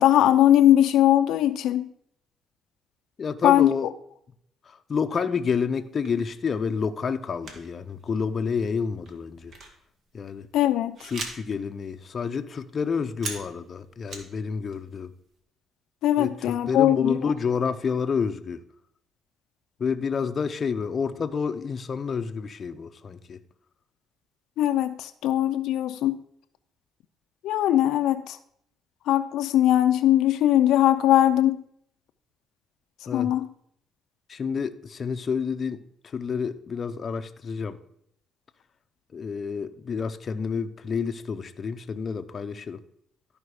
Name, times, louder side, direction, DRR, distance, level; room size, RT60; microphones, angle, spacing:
voice 1, 0.0-1.9 3.4-3.7 10.5-11.0 16.0-17.2 24.6-26.2 27.4-28.4 29.1-31.6 33.1-33.5, left 12 dB, 80° left, 9 dB, 0.5 m, -20 dB
voice 2, 3.2-3.9 4.7-9.5 10.1-10.5 11.1-15.1 16.2-18.6 19.8-23.4 33.1-33.3 34.3-37.8 39.1-42.8, left 6 dB, 40° left, 8 dB, 0.6 m, -29 dB
sound 1, 5.9-6.6 7.4-7.7 8.0-8.2 8.6-11.6 12.0-12.1 12.3-14.4 14.6-15.2, right 3 dB, 55° right, 1.8 m, -40 dB
13.0 x 5.1 x 4.8 m, 0.70 s
cardioid pair, 115°, 0 cm